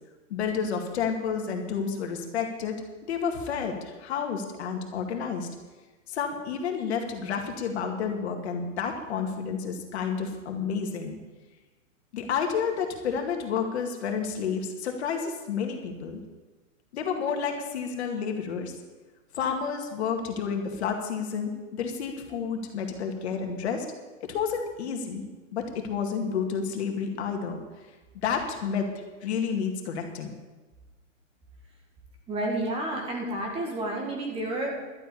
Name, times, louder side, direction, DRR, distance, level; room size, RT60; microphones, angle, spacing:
voice 1, 0.3-2.8 3.0-5.5 6.1-11.2 12.1-16.2 16.9-18.7 19.3-23.9 24.2-25.2 25.5-27.6 28.2-28.9 29.2-30.3, left 6 dB, 55° left, 3 dB, 2.1 m, -30 dB
voice 2, 32.3-34.8, right 1 dB, 15° right, 0 dB, 1.9 m, -30 dB
12.0 x 7.9 x 8.5 m, 1.2 s
hypercardioid pair, 160°, 40 cm